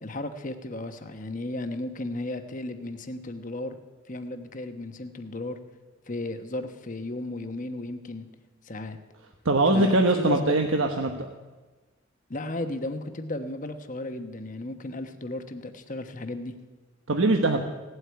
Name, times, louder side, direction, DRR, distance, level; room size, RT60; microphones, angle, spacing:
voice 1, 0.0-3.8 4.1-5.6 6.1-8.2 8.6-9.0 9.7-10.6 12.3-16.5, left 2 dB, 40° left, 8 dB, 1.1 m, -34 dB
voice 2, 9.4-11.3 17.1-17.6, right 2 dB, 80° right, 4 dB, 1.1 m, -22 dB
17.0 x 8.1 x 9.5 m, 1.3 s
head